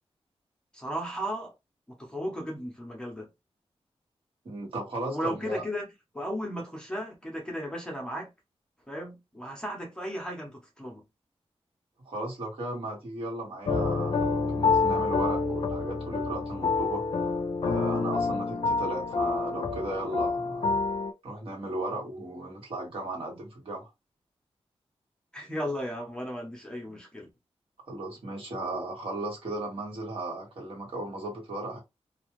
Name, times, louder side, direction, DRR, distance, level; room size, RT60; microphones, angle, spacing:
voice 1, 0.7-1.5 1.9-3.3 5.1-5.9 6.1-8.3 8.9-11.0 25.3-27.3, equal, 10° left, 0.7 m, -35 dB
voice 2, 4.4-5.6 12.0-17.0 17.6-20.8 21.2-23.9 27.9-31.8, right 2 dB, 60° right, 1.4 m, -35 dB
sound 1, 13.7-21.1, left 4 dB, 55° left, 0.5 m, -27 dB
2.5 x 2.3 x 3.0 m
wide cardioid pair, 170°, 11 cm